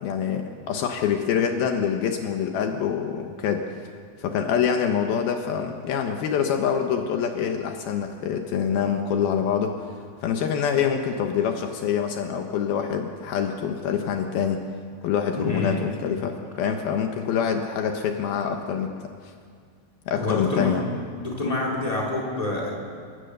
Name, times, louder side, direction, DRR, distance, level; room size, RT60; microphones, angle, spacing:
voice 1, 0.0-3.7 4.2-9.9 10.2-14.6 15.0-18.9 19.2-19.3 20.1-20.8, left 7 dB, 75° left, 4 dB, 2.9 m, -25 dB
voice 2, 15.4-15.8 20.2-20.8 21.2-22.7, left 2 dB, 10° left, -3 dB, 4.0 m, -27 dB
28.5 x 17.0 x 6.7 m, 2.1 s
omnidirectional pair, 4.5 m